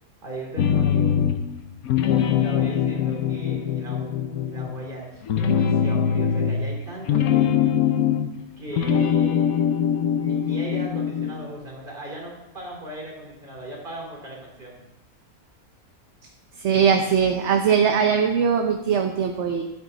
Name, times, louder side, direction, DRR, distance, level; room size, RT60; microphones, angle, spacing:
voice 1, 0.2-1.2 2.0-4.1 4.5-7.6 8.6-9.7 10.1-14.8, right 1 dB, 35° right, -2 dB, 3.2 m, -37 dB
sound 1, 0.6-1.5 1.8-4.9 5.2-8.4 8.7-11.4, left 8 dB, 80° left, 1.2 m, -22 dB
voice 2, 16.6-19.6, right 7 dB, 55° right, 4 dB, 1.1 m, -20 dB
12.5 x 9.3 x 4.0 m, 0.96 s
omnidirectional pair, 1.5 m